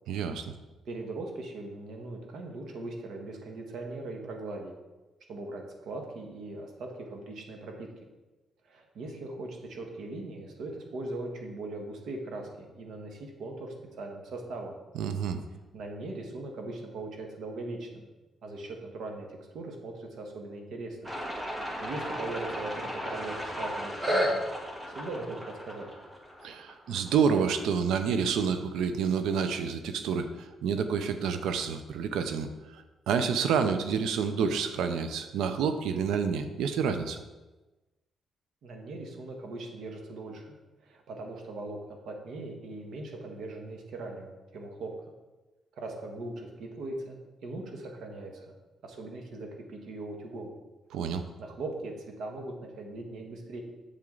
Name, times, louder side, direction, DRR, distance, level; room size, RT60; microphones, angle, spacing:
voice 1, 0.1-0.4 14.9-15.4 26.4-30.3 30.6-32.5 33.1-37.2 50.9-51.2, right 6 dB, 90° right, 8 dB, 0.6 m, -28 dB
voice 2, 0.8-4.7 5.3-7.9 8.6-14.8 15.7-18.1 18.4-21.1 21.8-24.4 24.9-25.9 38.6-40.5 40.8-41.8 42.0-44.9 45.8-48.5 48.8-50.5 51.4-53.6, right 2 dB, 75° right, 2 dB, 1.6 m, -40 dB
sound 1, 21.0-27.6, equal, 15° right, 1.7 m, -34 dB
7.6 x 7.3 x 3.9 m, 1.1 s
cardioid pair, 100°, 0 cm